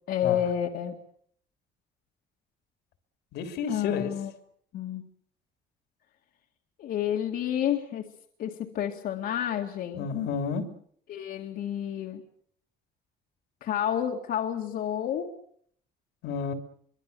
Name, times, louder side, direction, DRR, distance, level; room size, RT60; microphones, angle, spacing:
voice 1, 0.1-1.0 3.7-4.3 4.7-5.0 6.8-8.1 8.4-10.1 11.1-12.2 13.6-15.3, left 10 dB, 65° left, 0 dB, 2.1 m, -30 dB
voice 2, 3.3-4.1 9.9-10.6 16.2-16.5, left 6 dB, 85° left, 7 dB, 3.2 m, -31 dB
24.0 x 23.5 x 6.9 m, 0.64 s
cardioid pair, 110°, 17 cm